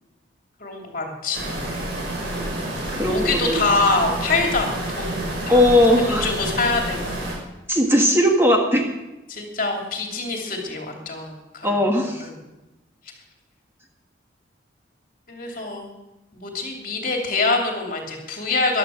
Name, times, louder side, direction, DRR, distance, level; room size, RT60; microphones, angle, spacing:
voice 1, 0.6-1.6 2.9-5.6 5.9-7.1 9.3-11.8 12.2-12.3 15.3-15.9 16.3-18.8, left 3 dB, 45° left, 1 dB, 3.0 m, -25 dB
sound 1, 1.3-7.4, right 1 dB, 60° right, 5.7 m, -29 dB
voice 2, 2.9-3.6 5.5-6.3 7.7-8.9 11.6-12.3 15.5-15.6, left 1 dB, 10° right, 1 dB, 1.5 m, -19 dB
14.5 x 11.5 x 6.5 m, 1.0 s
head